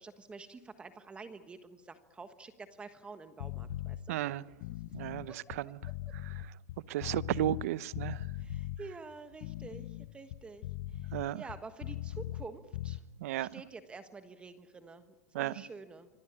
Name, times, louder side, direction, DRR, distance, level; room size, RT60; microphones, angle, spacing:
voice 1, 0.0-4.2 5.3-5.4 5.8-6.1 8.4-13.0 13.4-16.1, right 4 dB, 10° right, 1.4 m, -49 dB
sound 1, 3.4-4.0 4.5-7.7 7.9-8.8 9.3-12.5 12.7-13.0, left 15 dB, 50° left, 0.9 m, -40 dB
voice 2, 4.1-4.4 4.9-5.7 6.9-8.2 11.1-11.4 13.2-13.5 15.3-15.5, right 13 dB, 65° right, 0.8 m, -33 dB
25.5 x 18.5 x 9.9 m
supercardioid pair, 140°, 9 cm